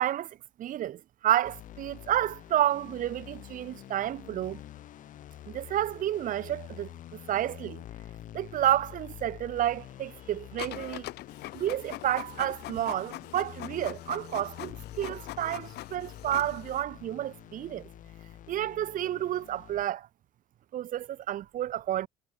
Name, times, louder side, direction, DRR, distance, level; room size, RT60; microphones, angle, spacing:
voice 1, 0.0-4.6 5.5-7.8 8.3-11.1 11.5-17.9 18.5-20.1 20.7-22.1, right 12 dB, 50° right, 0.6 m, -30 dB
sound 1, 1.4-19.8, left 12 dB, 50° left, 0.5 m, -47 dB
Printer, 10.6-16.8, left 17 dB, 75° left, 0.9 m, -42 dB
cardioid pair, 110°, 17 cm